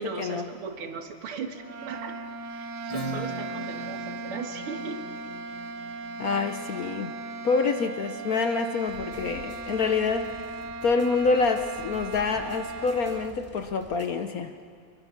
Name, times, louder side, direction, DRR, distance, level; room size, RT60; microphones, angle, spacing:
voice 1, 0.0-2.2 2.5-5.0, right 5 dB, 90° right, 5 dB, 2.4 m, -37 dB
Clarinet Bb (long), 1.5-13.4, right 3 dB, 70° right, 0.7 m, -38 dB
Acoustic guitar / Strum, 2.9-8.3, equal, 30° left, 0.7 m, -41 dB
voice 2, 6.2-7.1 7.4-10.3 10.8-14.5, left 4 dB, 60° left, 7 dB, 1.0 m, -26 dB
sound 1, 8.8-14.1, right 1 dB, 5° right, 2.3 m, -49 dB
25.0 x 23.0 x 6.0 m, 2.2 s
omnidirectional pair, 2.3 m